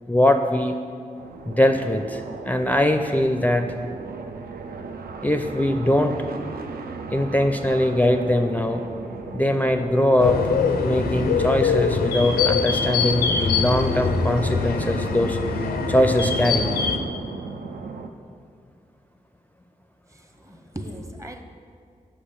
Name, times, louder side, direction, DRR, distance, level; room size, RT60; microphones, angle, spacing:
voice 1, 0.1-0.8 1.5-3.7 5.2-6.2 7.1-8.8 9.3-10.4 10.8-15.4 15.9-16.7, left 1 dB, 10° left, 6 dB, 0.5 m, -21 dB
sound 1, 1.2-18.1, right 4 dB, 75° right, 0.5 m, -37 dB
sound 2, 10.2-17.0, left 5 dB, 85° left, 0.5 m, -23 dB
voice 2, 20.1-21.4, equal, 20° right, 5 dB, 0.8 m, -36 dB
6.9 x 5.0 x 5.2 m, 2.2 s
cardioid pair, 45°, 16 cm